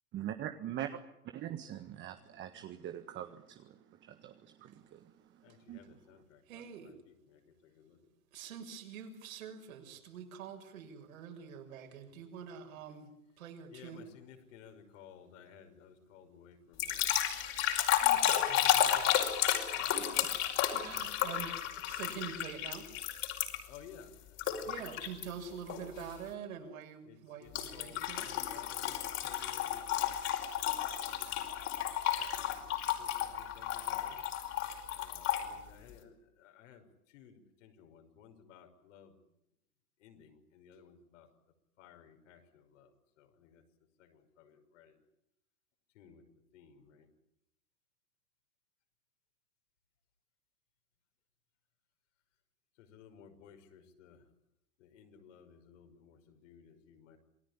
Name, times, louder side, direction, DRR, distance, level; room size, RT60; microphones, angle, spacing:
voice 1, 0.1-0.9 1.3-5.0 5.7-5.8, right 11 dB, 25° right, 1.6 m, -42 dB
voice 2, 5.4-8.0 13.7-17.1 20.5-21.2 23.7-24.1 24.5-24.8 27.1-30.1 31.0-31.5 32.2-34.2 35.0-36.1 36.4-36.8 37.1-39.1 40.0-41.3 41.8-42.9 43.2-43.6 44.0-45.0 46.0-46.2 46.5-47.1 52.8-54.2 54.8-57.2, left 7 dB, 55° left, 5.9 m, -57 dB
voice 3, 6.5-6.9 8.3-13.1 13.4-14.1 18.0-19.2 19.7-20.3 20.7-21.6 21.9-22.9 24.7-28.5, right 7 dB, 65° right, 6.6 m, -46 dB
sound 1, 16.8-23.8 24.4-25.2 25.7-26.0 27.5-35.5, left 11 dB, 35° left, 5.3 m, -32 dB
28.0 x 19.0 x 10.0 m
hypercardioid pair, 120°, 45 cm